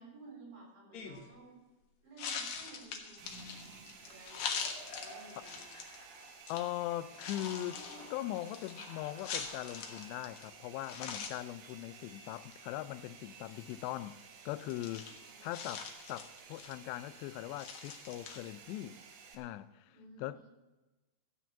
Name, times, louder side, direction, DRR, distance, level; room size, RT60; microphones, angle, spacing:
voice 1, 0.0-1.6 2.0-3.3 4.0-4.6 5.0-5.6 15.2-15.5 19.9-20.5, right 3 dB, 85° right, 6.3 m, -55 dB
sound 1, 0.9-1.3 2.2-6.0 6.5-6.6 7.1-10.5 10.8-11.4 11.7-11.8 12.1-12.5 13.5-13.7 14.6-17.0 17.6-18.7, left 6 dB, 60° left, 1.9 m, -43 dB
sound 2, 3.2-6.7 7.0-11.0, left 2 dB, 35° left, 3.5 m, -53 dB
Domestic sounds home sounds, 3.2-19.4, right 5 dB, 65° right, 2.9 m, -55 dB
voice 2, 6.5-14.2 14.5-19.0 19.3-19.9 20.2-20.5, left 14 dB, 85° left, 2.7 m, -40 dB
14.0 x 6.3 x 8.6 m
omnidirectional pair, 4.9 m